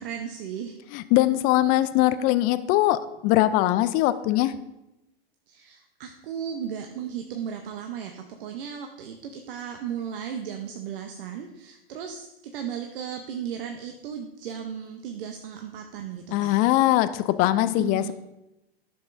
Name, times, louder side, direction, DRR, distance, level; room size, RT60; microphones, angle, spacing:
voice 1, 0.0-0.8 5.5-16.6 17.6-18.1, right 8 dB, 60° right, 4 dB, 0.8 m, -35 dB
voice 2, 0.9-4.5 16.3-18.1, left 15 dB, 30° left, 14 dB, 0.4 m, -21 dB
11.0 x 7.1 x 2.6 m, 0.93 s
hypercardioid pair, 105°, 31 cm